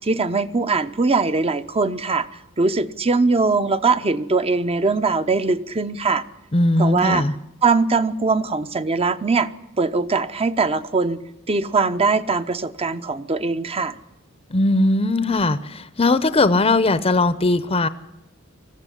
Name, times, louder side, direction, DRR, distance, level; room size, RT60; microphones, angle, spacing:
voice 1, 0.0-2.3 2.6-6.2 6.8-7.2 7.6-9.5 9.8-11.2 11.5-13.9, right 4 dB, 30° right, 11 dB, 0.8 m, -21 dB
voice 2, 6.5-7.3 14.5-17.9, left 2 dB, 30° left, 14 dB, 0.7 m, -19 dB
20.5 x 14.5 x 10.0 m, 0.89 s
head